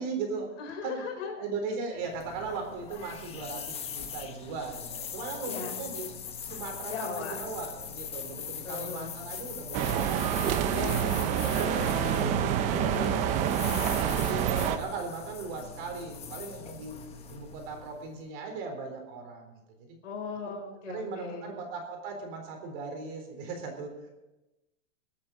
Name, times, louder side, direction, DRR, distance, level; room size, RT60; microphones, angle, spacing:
voice 1, 0.0-0.6 0.8-1.0 1.4-6.1 6.4-12.6 12.9-13.7 14.0-17.0 17.3-19.5 20.9-24.1, right 4 dB, 40° right, 3 dB, 3.9 m, -38 dB
voice 2, 0.6-1.4 5.4-5.8 6.9-7.4 8.6-9.2 10.7-13.3 20.0-21.5, left 5 dB, 65° left, 2 dB, 5.1 m, -38 dB
sound 1, 2.0-18.2, left 7 dB, 15° left, 1.2 m, -41 dB
sound 2, 9.7-14.8, right 9 dB, 20° right, 0.6 m, -27 dB
22.0 x 8.6 x 5.3 m, 1.0 s
supercardioid pair, 155°, 38 cm